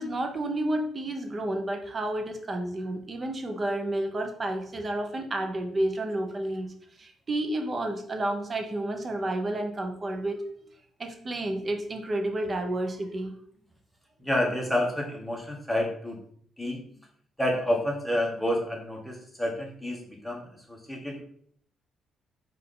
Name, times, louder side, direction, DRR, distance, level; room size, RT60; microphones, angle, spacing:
voice 1, 0.0-6.7 7.0-10.4 11.0-13.3, right 1 dB, 35° right, 4 dB, 0.8 m, -30 dB
voice 2, 14.2-16.2 16.6-16.8 17.4-20.4 20.7-21.2, left 1 dB, ahead, -1 dB, 1.2 m, -29 dB
4.5 x 2.6 x 3.8 m, 0.62 s
cardioid pair, 90°, 0 cm